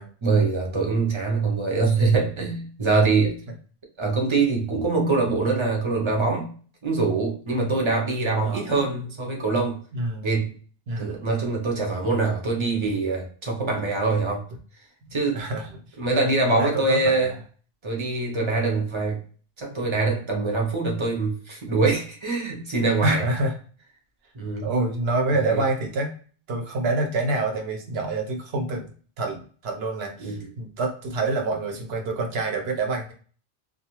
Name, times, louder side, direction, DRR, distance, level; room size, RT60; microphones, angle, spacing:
voice 1, 0.2-3.4 4.0-6.5 6.8-9.8 10.2-10.5 11.0-14.4 15.1-15.4 16.0-17.3 17.8-19.2 19.6-23.2 24.3-24.7 25.4-25.6 30.2-30.4, right 3 dB, 30° right, 1 dB, 0.7 m, -24 dB
voice 2, 9.9-10.3 10.9-11.3 15.3-15.8 16.5-17.4 23.0-23.6 24.6-26.1 26.5-28.9 29.2-33.1, right 2 dB, 65° right, 3 dB, 0.9 m, -27 dB
2.4 x 2.3 x 3.0 m, 0.42 s
omnidirectional pair, 1.1 m